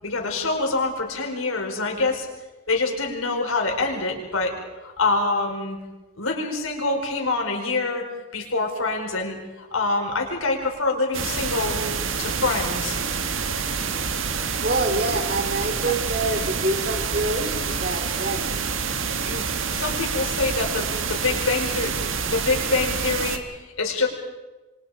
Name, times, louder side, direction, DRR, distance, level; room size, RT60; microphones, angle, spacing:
voice 1, 0.0-2.3 2.7-4.5 4.8-5.8 6.2-8.1 8.3-11.8 12.2-13.0 19.2-21.9 22.3-24.1, left 3 dB, 85° left, 2 dB, 5.3 m, -25 dB
sound 1, 11.1-23.4, right 5 dB, 75° right, 1.8 m, -27 dB
voice 2, 14.6-18.5, right 2 dB, 45° right, 5 dB, 2.8 m, -26 dB
27.5 x 24.5 x 5.1 m, 1.1 s
head